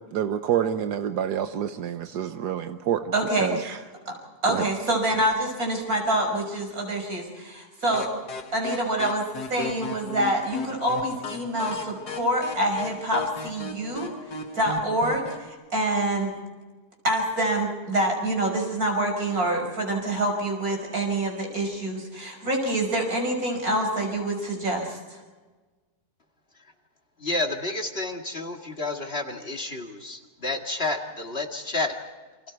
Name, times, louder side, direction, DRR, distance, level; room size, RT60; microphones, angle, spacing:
voice 1, 0.0-3.1 3.4-3.8 4.5-4.6, right 9 dB, 80° right, 9 dB, 1.5 m, -27 dB
voice 2, 3.1-3.8 4.1-4.2 4.4-8.1 8.5-16.3 17.0-25.2, right 1 dB, 60° right, 1 dB, 6.1 m, -26 dB
sound 1, 7.9-15.5, left 4 dB, 80° left, 2.3 m, -36 dB
voice 3, 27.2-32.0, left 2 dB, 40° left, 3 dB, 2.3 m, -30 dB
29.5 x 26.5 x 4.6 m, 1.3 s
omnidirectional pair, 1.7 m